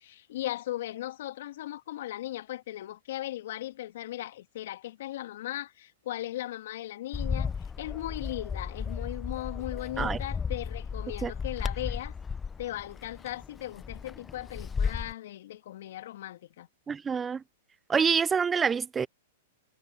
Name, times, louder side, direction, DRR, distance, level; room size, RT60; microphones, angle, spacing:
voice 1, 0.0-12.1 12.6-16.7, left 14 dB, 65° left, 2.7 m, -38 dB
Bird, 7.1-15.1, left 6 dB, 15° left, 0.9 m, -34 dB
voice 2, 16.9-17.4 17.9-19.1, right 6 dB, 15° right, 0.6 m, -26 dB
hypercardioid pair, 125°, 0 cm